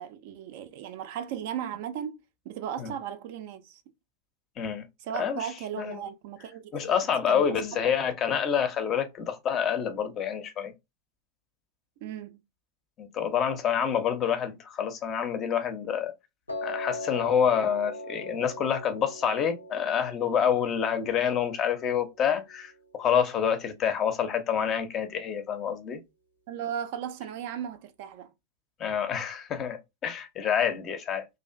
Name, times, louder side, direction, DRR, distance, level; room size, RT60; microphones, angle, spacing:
voice 1, 0.0-2.2 2.5-3.8 5.0-6.9 7.3-7.5 12.0-12.4 26.5-28.3, right 9 dB, 50° right, 0.3 m, -36 dB
voice 2, 6.7-10.7 13.0-16.1 16.6-26.0 28.8-31.2, left 8 dB, 30° left, 0.5 m, -27 dB
Piano, 16.5-22.6, left 2 dB, 85° left, 0.6 m, -40 dB
2.4 x 2.4 x 2.3 m
figure-of-eight pair, 90°, 0 cm